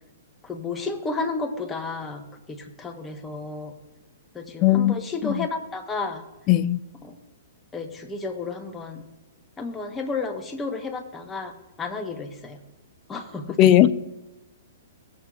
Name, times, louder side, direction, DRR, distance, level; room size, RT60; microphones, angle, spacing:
voice 1, 0.4-3.7 4.3-6.2 7.0-7.2 7.7-9.0 9.6-12.6 13.1-13.7, left 3 dB, 15° left, 1.1 m, -32 dB
voice 2, 4.6-4.9 5.2-5.5 6.5-6.8 13.6-13.9, left 13 dB, 35° left, 0.4 m, -17 dB
17.0 x 7.5 x 2.4 m
hypercardioid pair, 120°, 0 cm